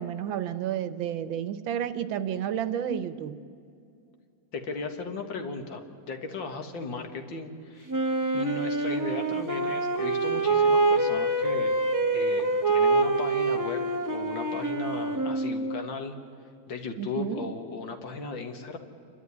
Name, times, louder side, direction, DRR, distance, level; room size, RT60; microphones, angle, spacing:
voice 1, 0.0-3.4 17.0-17.5, right 9 dB, 80° right, 13 dB, 1.6 m, -31 dB
voice 2, 4.5-7.9 8.3-11.8 12.1-13.8 14.1-16.2 16.7-18.8, left 4 dB, 70° left, 6 dB, 2.3 m, -36 dB
Wind instrument woodwind instrument, 7.9-15.9, right 2 dB, 20° right, 0.4 m, -26 dB
28.0 x 12.0 x 9.7 m, 2.4 s
omnidirectional pair, 2.2 m